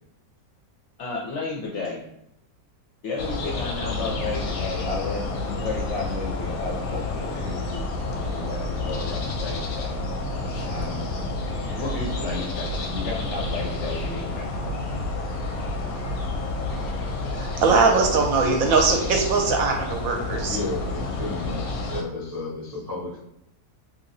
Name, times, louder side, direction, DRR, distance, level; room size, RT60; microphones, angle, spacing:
voice 1, 1.0-2.0 3.0-9.9 10.6-11.1 11.7-14.5, left 3 dB, 65° left, -2 dB, 0.7 m, -33 dB
sound 1, 3.2-22.0, left 2 dB, 90° left, 1.1 m, -29 dB
voice 2, 17.3-20.6, right 4 dB, 70° right, 2 dB, 0.9 m, -21 dB
voice 3, 20.4-23.2, left 2 dB, 30° right, -7 dB, 0.3 m, -32 dB
2.9 x 2.8 x 2.6 m, 0.80 s
omnidirectional pair, 1.6 m